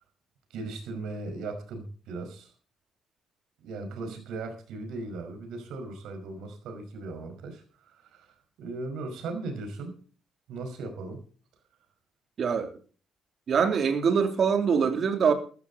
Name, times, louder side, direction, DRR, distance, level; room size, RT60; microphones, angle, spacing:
voice 1, 0.5-2.5 3.6-10.0 10.5-11.2, right 3 dB, 85° right, 5.2 m, -38 dB
voice 2, 12.4-12.7 13.5-15.3, right 6 dB, 55° right, 3.0 m, -24 dB
14.5 x 13.5 x 4.1 m
cardioid pair, 90°, 0 cm